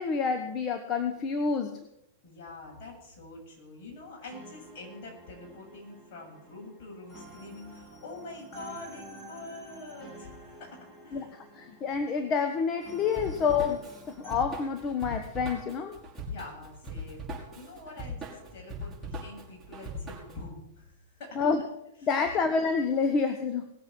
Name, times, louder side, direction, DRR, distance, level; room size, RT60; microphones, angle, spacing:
voice 1, 0.0-1.8 11.1-11.3 11.5-13.8 14.1-15.9 21.4-21.6 22.1-23.7, left 5 dB, 35° left, 7 dB, 1.3 m, -28 dB
voice 2, 2.2-11.4 16.3-21.4, left 2 dB, 50° left, -1 dB, 7.8 m, -45 dB
sound 1, 4.3-14.4, equal, 15° left, 7.4 m, -50 dB
Drum kit / Drum, 13.1-20.4, equal, 5° right, 5.5 m, -40 dB
19.5 x 8.1 x 6.3 m, 0.82 s
hypercardioid pair, 110°, 0 cm